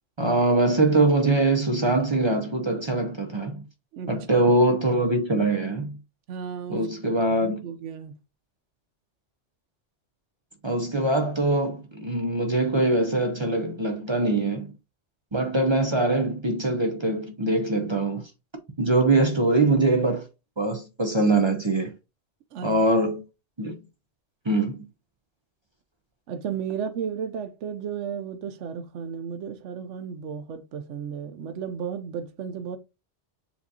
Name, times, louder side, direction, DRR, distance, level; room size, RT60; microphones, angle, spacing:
voice 1, 0.2-3.6 4.1-6.0 6.7-7.7 10.6-14.7 15.3-18.3 18.8-20.2 20.6-21.9 22.6-23.2 23.6-23.8 24.5-24.8, right 2 dB, 35° right, 0.5 m, -23 dB
voice 2, 3.9-4.4 6.3-6.8 7.3-8.1 22.5-22.7 26.3-32.8, right 7 dB, 75° right, 0.9 m, -34 dB
6.9 x 2.5 x 2.7 m
omnidirectional pair, 1.2 m